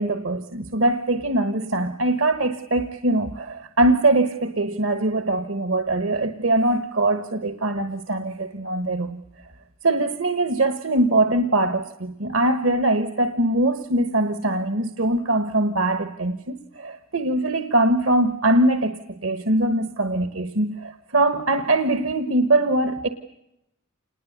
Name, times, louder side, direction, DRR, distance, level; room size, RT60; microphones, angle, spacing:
voice 1, 0.0-9.2 9.8-23.1, right 2 dB, 70° right, 1.3 m, -22 dB
28.0 x 20.5 x 8.1 m
head